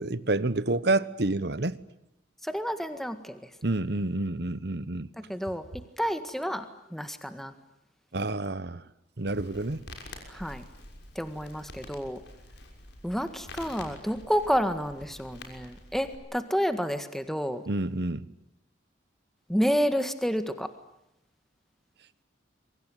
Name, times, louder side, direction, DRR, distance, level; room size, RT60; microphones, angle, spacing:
voice 1, 0.0-1.8 3.6-5.1 8.1-8.8 9.2-9.8 17.7-18.2, right 2 dB, 55° right, 1.1 m, -28 dB
voice 2, 2.4-3.4 5.3-5.6 6.0-6.6 6.9-7.5 10.3-10.6 11.1-12.2 13.0-17.6 19.5-20.7, equal, ahead, 1.7 m, -29 dB
Crackle, 9.3-16.1, left 2 dB, 60° left, 6.1 m, -47 dB
27.0 x 24.0 x 9.2 m
head